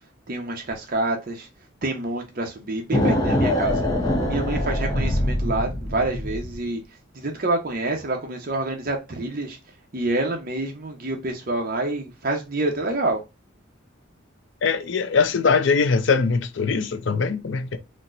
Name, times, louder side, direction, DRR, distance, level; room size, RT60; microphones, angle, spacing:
voice 1, 0.3-1.5 1.8-3.9 4.3-6.8 7.1-9.6 9.9-13.2, right 2 dB, 45° right, 0.7 m, -27 dB
sound 1, 2.9-6.6, left 1 dB, 20° left, 0.7 m, -23 dB
voice 2, 14.6-17.8, left 5 dB, 65° left, 0.5 m, -21 dB
4.2 x 2.1 x 2.5 m
head